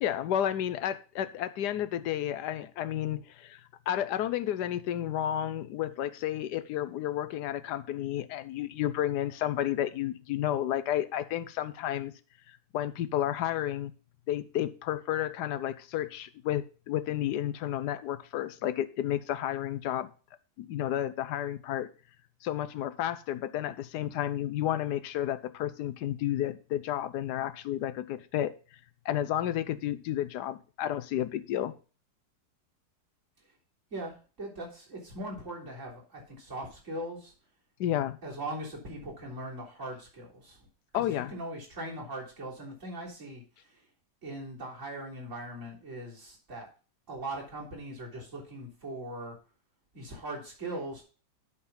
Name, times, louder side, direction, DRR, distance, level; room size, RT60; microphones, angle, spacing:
voice 1, 0.0-3.6 3.9-12.1 12.5-13.9 14.3-20.1 20.6-21.9 22.4-28.5 29.0-31.7 37.8-38.2 40.9-41.3, left 11 dB, 70° left, 1.1 m, -31 dB
voice 2, 33.9-37.3 38.2-40.6 40.9-43.4 44.2-46.7 47.1-49.4 49.9-51.0, right 1 dB, 40° right, 3.9 m, -40 dB
11.0 x 4.1 x 5.5 m
omnidirectional pair, 2.0 m